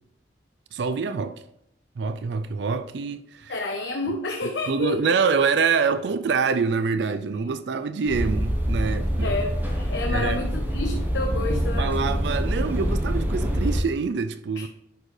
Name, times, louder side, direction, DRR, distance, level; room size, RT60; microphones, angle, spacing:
voice 1, 0.7-1.4 2.0-3.5 4.0-4.1 4.7-9.4 10.1-10.4 11.8-14.7, right 5 dB, 70° right, 0.4 m, -25 dB
voice 2, 3.5-5.2 8.9-11.9 14.6-14.7, left 3 dB, 80° left, 0.8 m, -30 dB
sound 1, 8.1-13.8, equal, 10° right, 1.2 m, -25 dB
11.5 x 4.4 x 3.2 m
head